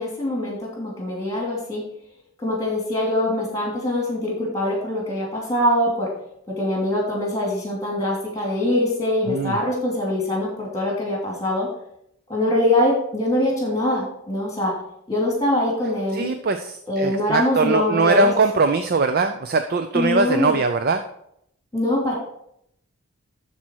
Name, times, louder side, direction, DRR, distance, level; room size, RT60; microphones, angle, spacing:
voice 1, 0.0-1.8 2.4-6.1 6.5-11.7 12.3-14.7 15.1-16.3 16.9-18.3 19.9-20.6 21.7-22.1, left 1 dB, 15° left, -1 dB, 2.7 m, -23 dB
voice 2, 9.3-9.6 16.1-21.0, right 4 dB, 45° right, 7 dB, 0.5 m, -21 dB
12.5 x 4.3 x 4.6 m, 0.73 s
head